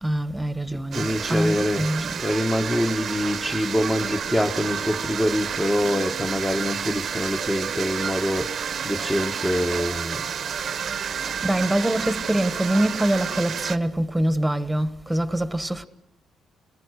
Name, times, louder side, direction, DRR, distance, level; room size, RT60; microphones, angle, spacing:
voice 1, 0.0-2.1 11.4-15.9, right 1 dB, 5° right, 1.4 m, -24 dB
voice 2, 0.7-1.9 2.2-10.6, left 1 dB, 10° left, 1.3 m, -25 dB
sound 1, 0.9-13.8, right 7 dB, 55° right, 1.0 m, -30 dB
29.5 x 20.0 x 6.5 m
cardioid pair, 90°, 0 cm